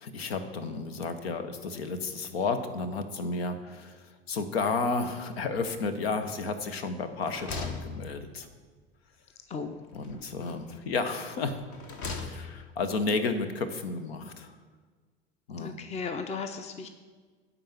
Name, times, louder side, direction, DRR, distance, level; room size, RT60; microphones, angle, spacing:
voice 1, 0.0-8.5 9.9-11.6 12.0-14.5 15.5-15.8, left 4 dB, 80° left, 9 dB, 0.9 m, -32 dB
sound 1, 6.2-6.7 7.0-8.7 9.9-10.8 11.5-12.7, left 4 dB, 45° left, 1.2 m, -40 dB
voice 2, 9.5-9.8 15.6-16.9, left 5 dB, 20° left, 8 dB, 0.6 m, -36 dB
10.0 x 4.0 x 7.2 m, 1.5 s
hypercardioid pair, 80°, 30 cm